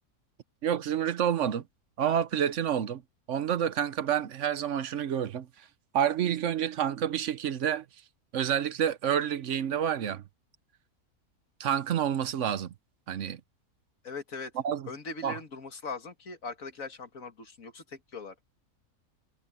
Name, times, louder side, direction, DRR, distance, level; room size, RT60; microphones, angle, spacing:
voice 1, 0.6-1.6 2.0-3.0 3.3-5.5 5.9-7.8 8.3-10.2 11.6-12.7 13.1-13.4 14.6-14.9 15.2-15.4, right 9 dB, 60° right, 1.0 m, -28 dB
voice 2, 14.0-14.5 14.9-18.3, left 4 dB, 65° left, 2.3 m, -40 dB
omnidirectional pair, 1.5 m